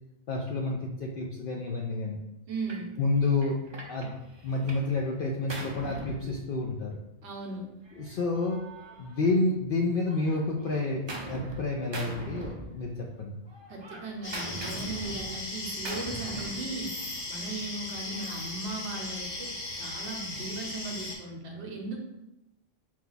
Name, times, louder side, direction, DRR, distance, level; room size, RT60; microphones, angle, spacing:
voice 1, 0.3-2.2 3.0-3.6 3.9-4.1 4.4-7.0 8.0-8.6 9.0-13.4, left 3 dB, 65° left, -1 dB, 0.5 m, -29 dB
voice 2, 2.5-2.9 7.2-7.6 13.7-16.9 17.3-22.0, right 2 dB, 65° right, 1 dB, 1.0 m, -37 dB
Gunshot gunfire, 2.7-2.9 3.4-4.9 5.2-6.9 7.9-9.7 10.1-11.6 11.9-13.2 13.5-16.7, right 2 dB, 45° right, 0.3 m, -41 dB
sound 1, 14.2-21.2, left 2 dB, 80° left, 1.2 m, -37 dB
4.5 x 2.2 x 3.9 m, 0.91 s
omnidirectional pair, 1.3 m